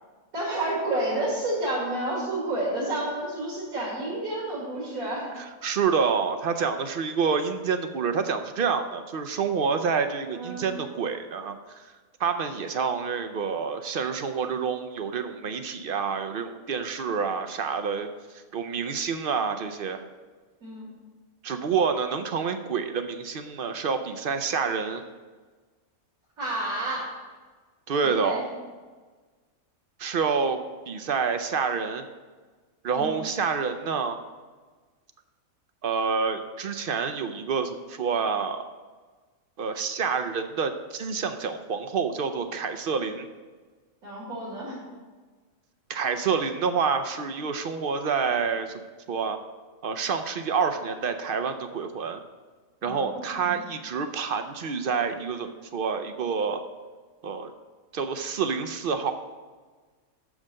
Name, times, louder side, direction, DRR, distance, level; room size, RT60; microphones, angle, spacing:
voice 1, 0.3-5.3 10.3-10.6 20.6-20.9 26.4-27.1 28.1-28.4 33.0-33.3 44.0-44.8 52.8-53.1 53.4-53.6, right 1 dB, 80° right, -6 dB, 2.6 m, -30 dB
voice 2, 5.4-11.9 12.2-18.1 18.5-20.0 21.4-25.0 27.9-28.4 30.0-30.6 30.9-32.0 32.8-34.2 35.8-38.6 39.6-43.3 45.9-48.7 49.1-49.4 49.8-52.2 52.8-56.6 57.2-57.5 57.9-59.1, right 5 dB, 60° right, 8 dB, 0.6 m, -28 dB
6.4 x 6.3 x 7.4 m, 1.4 s
omnidirectional pair, 1.5 m